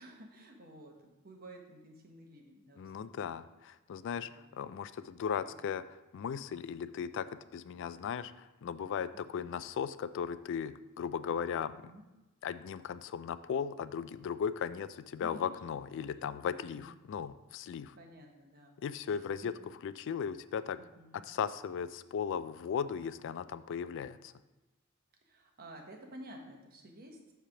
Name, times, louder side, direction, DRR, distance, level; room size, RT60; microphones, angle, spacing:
voice 1, 0.0-3.2 4.2-4.6 5.5-5.6 9.1-9.5 11.9-12.0 15.2-15.5 16.0-16.9 18.0-18.8 19.0-19.2 19.4-19.5 20.8-21.2 25.2-27.3, right 1 dB, 45° right, 2 dB, 1.1 m, -53 dB
voice 2, 2.8-11.7 12.4-18.0 18.8-19.5 19.8-20.8 21.3-24.3, left 7 dB, 60° left, 14 dB, 0.3 m, -37 dB
7.5 x 3.3 x 5.8 m, 1.1 s
head